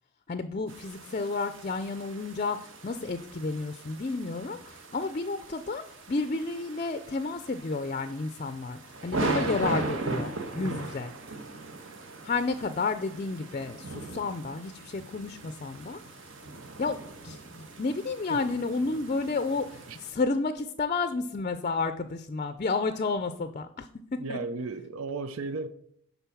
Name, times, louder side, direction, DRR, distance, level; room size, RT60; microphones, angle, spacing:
voice 1, 0.3-11.1 12.2-16.2 16.8-17.0 17.2-23.9 24.3-24.4, left 3 dB, 35° left, 0.4 m, -31 dB
sound 1, 0.7-20.1, right 3 dB, 65° right, 1.3 m, -38 dB
voice 2, 24.2-25.7, right 3 dB, 85° right, 0.6 m, -34 dB
10.5 x 4.0 x 7.0 m
head